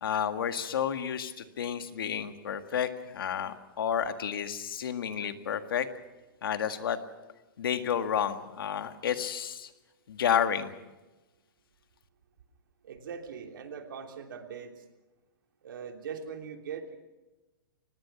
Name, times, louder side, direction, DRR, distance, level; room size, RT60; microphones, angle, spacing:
voice 1, 0.0-5.9 6.4-7.0 7.6-9.7 10.1-10.7, left 8 dB, 80° left, 8 dB, 1.9 m, -31 dB
voice 2, 12.8-14.7 15.6-17.0, right 6 dB, 70° right, 4 dB, 3.1 m, -41 dB
24.0 x 19.5 x 6.1 m, 1.1 s
hypercardioid pair, 170°, 12 cm